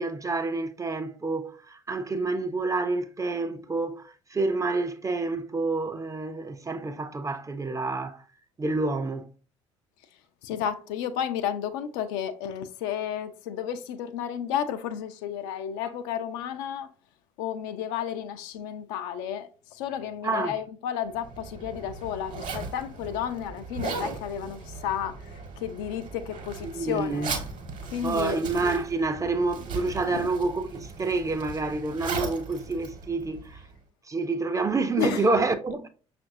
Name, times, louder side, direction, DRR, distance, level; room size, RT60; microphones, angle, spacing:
voice 1, 0.0-8.2 8.6-9.3 20.2-20.6 26.7-27.4 28.0-33.6 34.0-35.9, right 3 dB, 20° right, 0.5 m, -28 dB
voice 2, 10.4-16.9 17.4-27.3 27.9-28.4 30.0-30.3 35.0-35.4, left 9 dB, 65° left, 0.4 m, -32 dB
Zipper (clothing), 21.1-33.8, right 4 dB, 50° right, 1.1 m, -38 dB
5.7 x 2.5 x 2.6 m
figure-of-eight pair, 55°, 17 cm